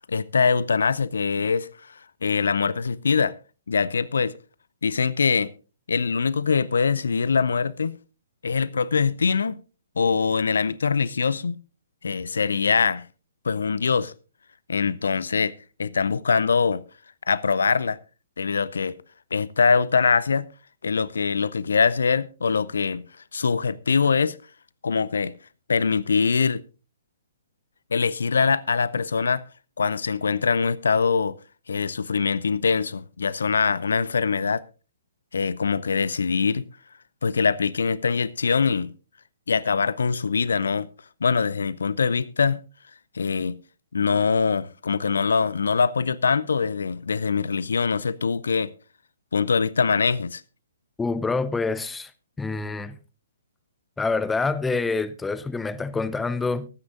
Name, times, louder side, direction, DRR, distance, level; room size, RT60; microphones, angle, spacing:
voice 1, 0.1-3.3 3.7-4.3 4.8-5.5 5.9-8.0 8.4-9.6 10.0-11.6 12.0-13.1 13.4-14.1 14.7-15.5 15.8-16.8 17.3-18.0 18.4-19.0 19.3-20.5 20.8-23.0 23.3-24.4 24.8-25.3 25.7-26.6 27.9-29.4 29.8-31.4 31.7-34.6 35.3-36.6 37.2-38.9 39.5-40.9 41.2-42.6 43.1-43.6 43.9-48.7 49.3-50.4, left 5 dB, 65° left, 0.5 m, -23 dB
voice 2, 51.0-52.1 52.4-53.0 54.0-56.7, left 3 dB, 10° left, 0.6 m, -26 dB
23.5 x 9.4 x 2.5 m
figure-of-eight pair, 125°, 0 cm